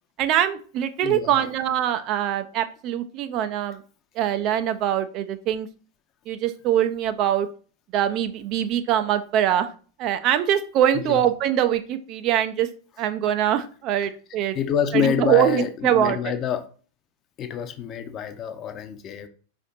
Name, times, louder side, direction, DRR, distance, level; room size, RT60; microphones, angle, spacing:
voice 1, 0.2-3.8 4.2-5.7 6.3-7.5 7.9-9.7 10.0-12.7 13.0-14.6 14.9-16.3, right 11 dB, 40° right, 8 dB, 0.4 m, -23 dB
voice 2, 1.0-1.5 10.9-11.2 14.0-14.1 14.5-16.7 17.4-19.3, left 9 dB, 30° left, 9 dB, 0.6 m, -27 dB
4.9 x 2.5 x 4.1 m, 0.39 s
figure-of-eight pair, 90°, 0 cm